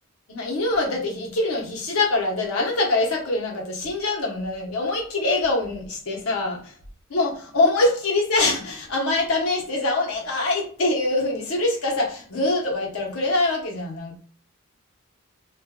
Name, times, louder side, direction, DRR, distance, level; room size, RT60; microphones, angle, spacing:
voice 1, 0.3-6.6 7.1-14.2, left 2 dB, 85° left, 0 dB, 0.9 m, -24 dB
2.5 x 2.2 x 3.6 m, 0.42 s
head